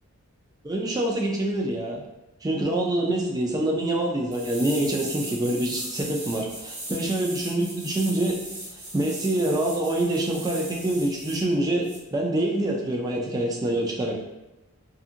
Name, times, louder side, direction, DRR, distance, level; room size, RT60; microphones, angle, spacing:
voice 1, 0.6-2.0 2.4-8.4 8.9-11.9 12.1-14.2, right 1 dB, 15° right, -1 dB, 0.4 m, -25 dB
sound 1, 4.3-11.4 11.8-12.0, right 1 dB, 35° right, 0.8 m, -38 dB
2.7 x 2.6 x 2.5 m, 1.0 s
head